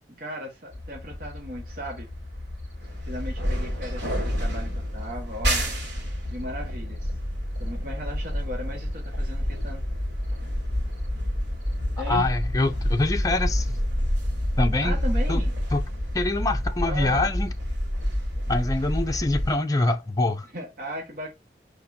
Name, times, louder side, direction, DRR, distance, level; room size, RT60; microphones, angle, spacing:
voice 1, 0.2-2.1 3.0-5.7 6.3-7.1 7.6-9.8 12.0-12.3 14.8-15.6 16.8-17.3 20.5-21.3, equal, 55° right, 1.8 m, -36 dB
sound 1, 0.7-19.6, equal, 80° right, 3.7 m, -28 dB
voice 2, 12.1-13.7 14.6-14.9 15.3-15.4 15.7-15.8 16.1-17.5 18.5-20.5, left 2 dB, 20° left, 0.7 m, -25 dB
6.4 x 5.2 x 2.8 m
head